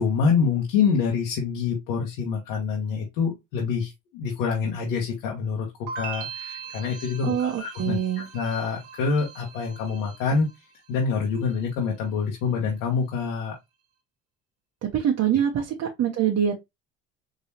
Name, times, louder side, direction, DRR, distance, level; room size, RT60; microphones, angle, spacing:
voice 1, 0.0-5.7 6.0-10.5 10.9-13.5, left 5 dB, 80° left, 1.2 m, -26 dB
sound 1, 5.9-10.9 11.2-11.8, right 6 dB, 80° right, 1.0 m, -40 dB
voice 2, 7.2-8.3 14.8-16.6, right 9 dB, 50° right, 0.9 m, -24 dB
3.8 x 3.0 x 2.7 m
hypercardioid pair, 70°, 35 cm